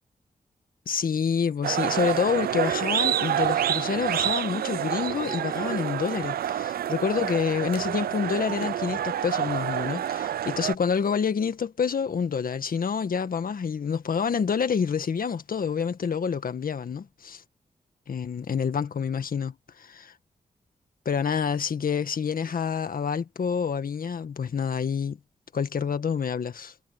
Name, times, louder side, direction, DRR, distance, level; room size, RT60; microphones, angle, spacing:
voice 1, 0.9-17.4 18.1-19.6 21.1-25.2 25.5-26.7, left 6 dB, 70° left, 1.8 m, -27 dB
sound 1, 1.6-10.7, right 10 dB, 85° right, 0.5 m, -28 dB
cardioid pair, 55°, 15 cm